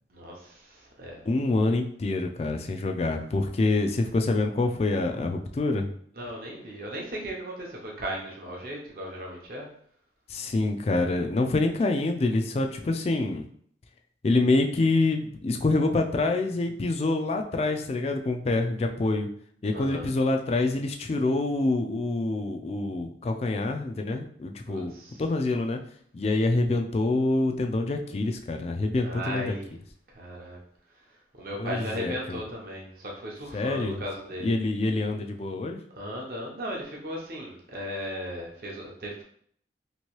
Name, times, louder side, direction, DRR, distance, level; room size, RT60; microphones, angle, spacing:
voice 1, 0.1-1.2 6.2-9.7 19.7-20.1 24.7-25.2 29.0-29.7 30.1-30.6 31.4-34.6 35.9-39.2, equal, 50° right, -2 dB, 0.7 m, -36 dB
voice 2, 1.3-5.9 10.3-13.4 14.2-19.3 19.6-24.9 25.2-25.8 26.1-29.5 31.6-32.4 33.5-34.0 34.4-35.8, left 2 dB, 35° left, 5 dB, 0.3 m, -26 dB
3.0 x 2.6 x 2.9 m, 0.62 s
head